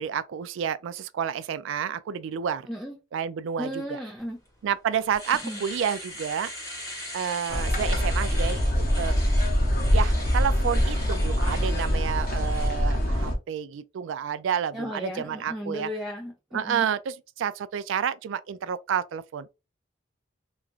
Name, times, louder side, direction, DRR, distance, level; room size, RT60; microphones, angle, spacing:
voice 1, 0.0-2.7 3.1-4.0 4.6-6.5 7.1-9.2 9.9-15.9 16.5-19.5, right 8 dB, 75° right, 0.3 m, -30 dB
voice 2, 3.6-4.4 5.4-5.6 14.7-16.9, equal, ahead, 0.4 m, -35 dB
Domestic sounds home sounds, 4.5-4.6 4.9-12.7, left 1 dB, 15° left, 0.9 m, -40 dB
sound 1, 7.5-13.4, equal, 50° left, 0.7 m, -24 dB
3.0 x 2.4 x 2.4 m
head